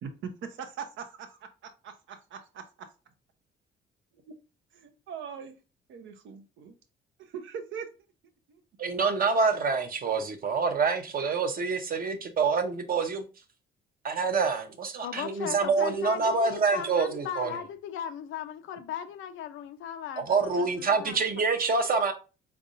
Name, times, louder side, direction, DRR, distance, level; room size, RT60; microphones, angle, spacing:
voice 1, 0.0-2.9 4.7-5.5 5.9-6.7 7.2-7.9 8.5-8.6, right 6 dB, 75° right, 0.8 m, -41 dB
voice 2, 8.8-13.3 14.0-17.6 20.3-22.1, right 4 dB, 45° right, 0.9 m, -26 dB
voice 3, 15.0-21.3, left 9 dB, 85° left, 0.6 m, -37 dB
4.2 x 3.4 x 2.6 m
cardioid pair, 90°, 20 cm